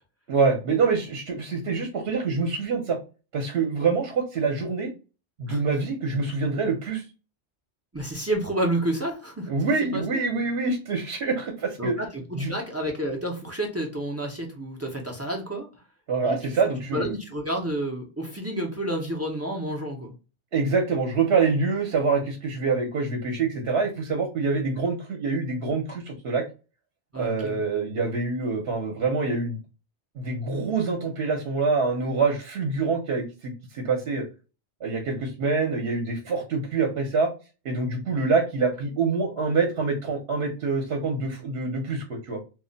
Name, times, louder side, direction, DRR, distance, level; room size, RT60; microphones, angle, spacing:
voice 1, 0.3-3.0 3.3-4.9 5.4-7.0 9.5-11.9 12.3-12.5 16.1-17.1 20.5-26.4 27.2-29.6 30.2-34.2 34.8-37.3 37.6-42.4, right 4 dB, 65° right, 2 dB, 0.9 m, -25 dB
voice 2, 7.9-9.5 9.9-10.0 11.8-15.7 16.2-16.4 16.9-20.1 27.1-27.6, right 1 dB, 25° right, 0 dB, 0.3 m, -30 dB
2.2 x 2.1 x 3.8 m, 0.32 s
omnidirectional pair, 1.2 m